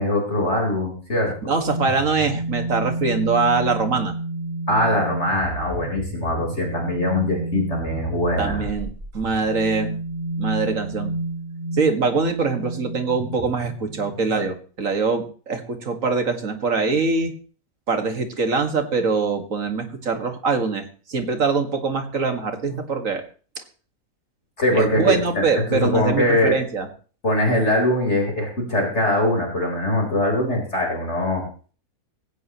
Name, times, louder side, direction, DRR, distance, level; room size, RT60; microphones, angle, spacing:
voice 1, 0.0-1.3 4.7-8.6 22.7-22.8 24.6-26.6 27.2-31.4, left 1 dB, 45° left, 0 dB, 4.6 m, -22 dB
voice 2, 1.4-4.1 8.4-8.9 9.1-9.9 10.4-11.1 11.7-17.3 17.9-23.2 24.7-26.9, right 4 dB, 60° right, 6 dB, 2.4 m, -23 dB
sound 1, 1.6-14.5, right 2 dB, 20° right, 5.7 m, -31 dB
18.5 x 16.5 x 3.1 m, 0.40 s
omnidirectional pair, 1.6 m